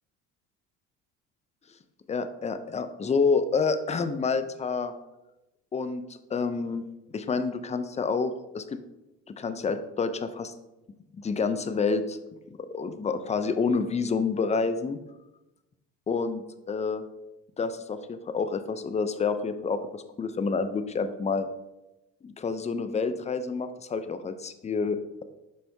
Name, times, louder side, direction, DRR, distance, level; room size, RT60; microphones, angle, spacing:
voice 1, 2.1-4.9 5.7-6.0 6.3-6.8 7.1-8.8 9.3-10.5 11.1-12.2 12.5-15.0 16.1-17.0 17.6-21.5 22.2-25.2, left 4 dB, 20° left, 11 dB, 0.5 m, -28 dB
7.5 x 5.5 x 2.7 m, 0.97 s
supercardioid pair, 80°, 34 cm